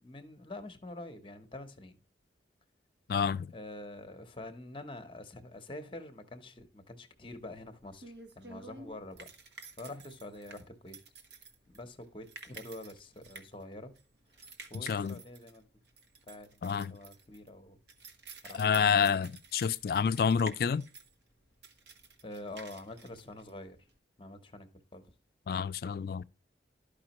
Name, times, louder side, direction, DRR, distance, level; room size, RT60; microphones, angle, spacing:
voice 1, 0.0-2.0 3.5-9.3 9.8-11.0 11.7-13.9 14.7-15.6 16.3-17.8 18.4-19.0 22.2-23.8 24.2-25.0, left 1 dB, 30° left, 0.8 m, -46 dB
voice 2, 3.1-3.5 14.8-15.2 16.6-16.9 18.5-20.9 25.5-26.2, left 6 dB, 55° left, 0.3 m, -28 dB
sound 1, 7.2-24.0, right 4 dB, 75° right, 1.2 m, -51 dB
12.5 x 5.1 x 2.9 m
head